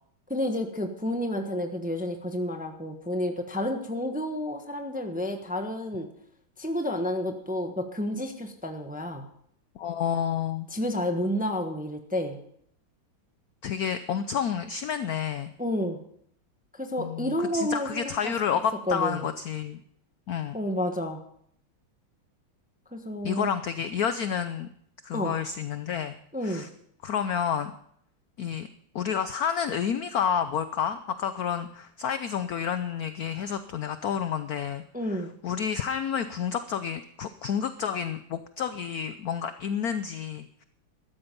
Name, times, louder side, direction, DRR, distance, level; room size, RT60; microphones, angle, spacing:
voice 1, 0.3-6.1 6.6-9.2 10.7-12.4 15.6-16.0 16.7-18.3 18.9-19.3 20.5-21.2 22.9-23.5 25.1-25.3 26.3-26.6 34.9-35.3, left 1 dB, 5° right, 5 dB, 0.7 m, -30 dB
voice 2, 9.8-10.7 13.6-15.5 17.0-19.8 20.3-20.6 23.2-24.7 25.0-26.2 26.4-26.7 27.0-27.7 28.4-28.7 28.9-34.8 35.1-40.6, left 8 dB, 75° left, 11 dB, 0.8 m, -30 dB
13.0 x 13.0 x 5.2 m, 0.69 s
omnidirectional pair, 2.3 m